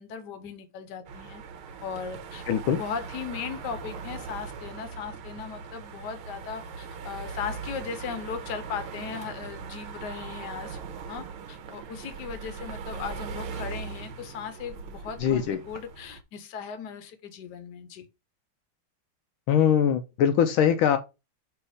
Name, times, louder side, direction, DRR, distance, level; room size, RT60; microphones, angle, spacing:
voice 1, 0.0-1.4 1.8-2.4 2.8-10.8 11.1-18.1, left 6 dB, 60° left, 1.4 m, -37 dB
sound 1, 1.1-16.2, right 5 dB, 85° right, 1.7 m, -40 dB
voice 2, 2.5-2.8 15.2-15.6 19.5-21.0, left 8 dB, 80° left, 1.4 m, -22 dB
6.0 x 3.5 x 4.8 m
omnidirectional pair, 2.3 m